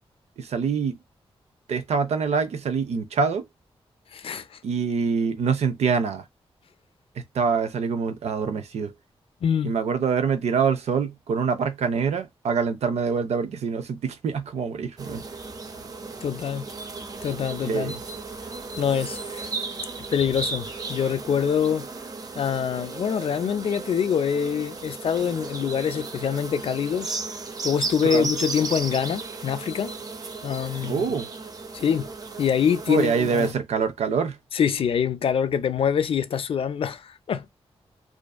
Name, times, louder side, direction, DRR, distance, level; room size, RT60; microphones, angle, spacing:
voice 1, 0.4-1.0 1.7-3.4 4.6-6.2 7.3-8.9 9.6-15.2 17.7-18.0 28.0-28.3 30.8-31.3 32.9-34.4, right 5 dB, 90° right, 0.5 m, -25 dB
voice 2, 4.1-4.5 9.4-9.7 16.2-16.6 17.2-17.9 18.8-19.5 20.1-21.9 22.4-27.2 27.6-29.9 30.4-31.1 31.7-32.1 32.4-33.5 34.5-37.5, left 7 dB, 60° left, 0.4 m, -25 dB
sound 1, 15.0-33.5, right 3 dB, 35° right, 0.5 m, -35 dB
2.5 x 2.4 x 2.2 m
wide cardioid pair, 115°, 11 cm